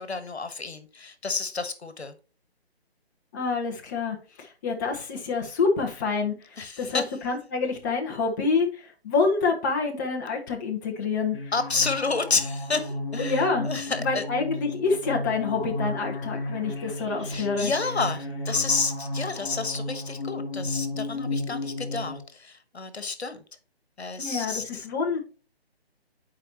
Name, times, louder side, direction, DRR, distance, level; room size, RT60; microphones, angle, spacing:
voice 1, 0.0-2.1 6.6-7.1 11.5-14.2 17.3-23.4 24.0-24.9, left 4 dB, 80° left, 11 dB, 1.3 m, -30 dB
voice 2, 3.3-6.4 6.8-11.4 13.2-13.7 14.0-17.7 24.2-25.2, left 4 dB, 20° left, 0 dB, 0.9 m, -27 dB
sound 1, 11.3-22.2, left 2 dB, 50° left, 2.1 m, -33 dB
10.0 x 4.7 x 2.8 m, 0.36 s
figure-of-eight pair, 150°, 32 cm